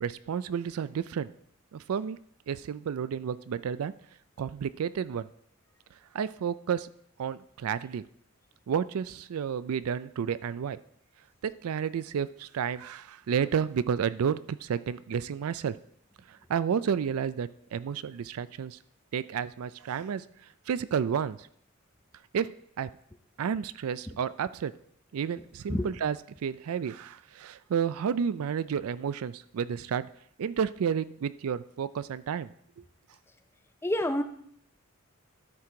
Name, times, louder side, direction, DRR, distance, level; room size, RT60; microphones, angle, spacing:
voice 1, 0.0-1.3 1.7-2.2 2.5-3.9 4.4-5.3 6.1-6.9 7.2-8.0 8.7-10.8 11.4-15.8 16.3-18.8 19.1-20.2 20.7-21.4 22.3-22.5 22.8-22.9 23.4-24.7 25.1-30.1 30.4-32.5, right 7 dB, 75° right, 16 dB, 0.4 m, -31 dB
voice 2, 33.8-34.2, left 1 dB, 10° left, 8 dB, 0.5 m, -27 dB
12.5 x 4.6 x 3.8 m, 0.65 s
head